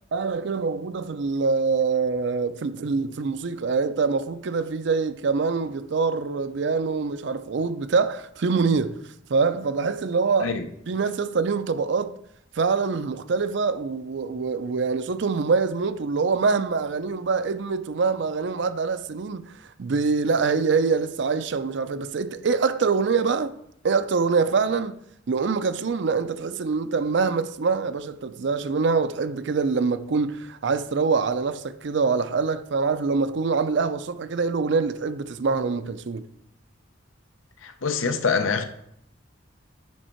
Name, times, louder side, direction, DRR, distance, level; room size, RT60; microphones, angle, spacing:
voice 1, 0.1-9.0 9.3-10.5 10.9-12.2 12.6-19.5 19.8-23.5 23.8-25.0 25.3-36.2, right 4 dB, 60° right, 0.5 m, -24 dB
voice 2, 37.6-38.6, left 5 dB, 85° left, 0.7 m, -25 dB
7.3 x 5.4 x 4.4 m
head